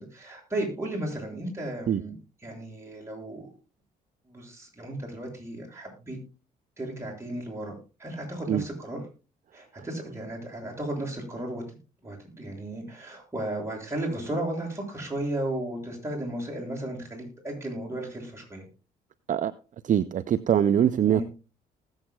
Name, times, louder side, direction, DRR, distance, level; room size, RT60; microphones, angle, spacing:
voice 1, 0.0-2.1 2.4-3.5 4.3-6.2 6.8-9.0 9.5-11.6 12.0-18.6 21.0-21.2, right 1 dB, 15° right, -1 dB, 6.9 m, -34 dB
voice 2, 19.8-21.2, right 9 dB, 45° right, 14 dB, 0.6 m, -23 dB
19.5 x 8.1 x 2.3 m, 0.33 s
supercardioid pair, 60°, 18 cm